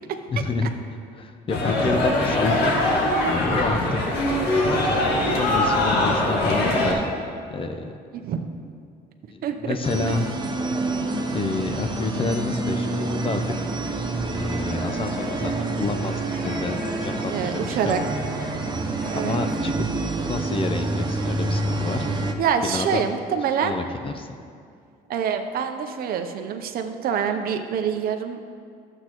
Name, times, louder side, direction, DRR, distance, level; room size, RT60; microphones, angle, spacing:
voice 1, 0.3-0.7 1.1-3.8 4.6-7.0 7.5-7.9 9.3-10.3 11.3-13.4 14.2-18.0 18.8-18.9 19.2-19.9 20.3-22.1 22.6-23.1 23.6-24.3, left 3 dB, 30° left, 7 dB, 0.6 m, -29 dB
sound 1, 1.5-6.9, left 1 dB, 80° left, 1.7 m, -22 dB
voice 2, 8.1-8.5 9.4-9.8 10.0-10.1 17.3-18.0 19.1-19.4 22.4-23.8 25.1-28.4, right 7 dB, 60° right, 6 dB, 0.7 m, -26 dB
sound 2, 9.8-19.6, left 3 dB, 60° left, 2.4 m, -36 dB
sound 3, 9.8-22.3, right 3 dB, 25° right, 0.7 m, -28 dB
12.0 x 7.9 x 3.0 m, 2.3 s
cardioid pair, 110°, 17 cm